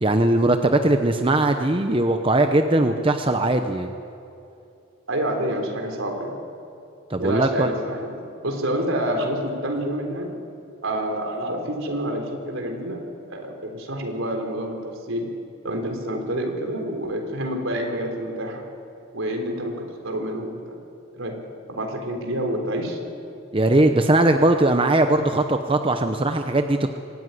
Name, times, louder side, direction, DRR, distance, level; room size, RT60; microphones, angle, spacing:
voice 1, 0.0-3.9 7.1-7.7 23.5-26.9, right 2 dB, 25° right, 6 dB, 0.8 m, -20 dB
voice 2, 5.1-6.4 7.2-8.1 8.4-10.3 10.8-15.3 15.6-18.7 19.1-20.8 21.1-21.4 21.7-23.0, right 1 dB, 75° right, 3 dB, 3.9 m, -28 dB
24.5 x 15.0 x 9.8 m, 2.7 s
head